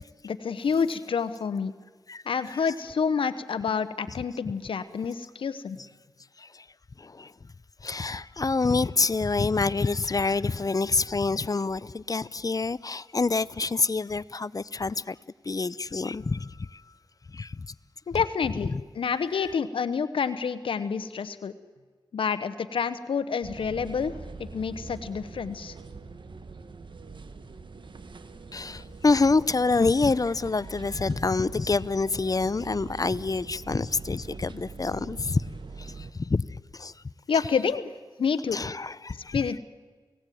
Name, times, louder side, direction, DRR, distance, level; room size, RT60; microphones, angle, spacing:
voice 1, 0.2-1.7 2.2-5.8 18.1-21.5 22.1-25.7 37.3-37.9 38.2-38.6 39.1-39.6, left 6 dB, 90° left, 13 dB, 1.0 m, -28 dB
voice 2, 2.1-2.6 6.4-6.6 7.0-7.3 7.8-15.2 15.4-16.8 17.3-17.7 18.7-18.8 19.4-19.5 28.5-35.4 35.8-36.9 38.5-39.5, left 3 dB, 45° left, 19 dB, 0.7 m, -27 dB
sound 1, 23.4-36.1, right 4 dB, 65° right, 1.7 m, -43 dB
29.5 x 17.5 x 9.3 m, 1.5 s
cardioid pair, 45°, 9 cm